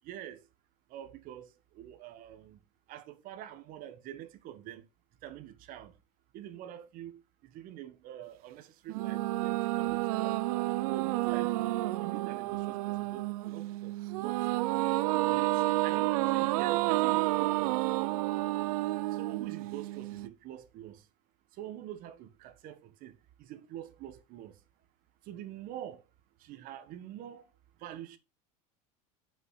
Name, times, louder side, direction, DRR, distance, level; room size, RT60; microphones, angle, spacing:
voice 1, 0.0-0.4 0.9-2.6 2.9-4.8 5.2-5.9 6.3-10.4 10.9-14.4 15.3-17.8 19.1-21.0 21.6-24.5 25.2-26.0 26.4-27.5 27.8-28.2, right 11 dB, 50° right, 1.5 m, -46 dB
sound 1, 8.9-20.3, right 19 dB, 80° right, 0.5 m, -30 dB
7.3 x 6.0 x 5.7 m
supercardioid pair, 130°, 19 cm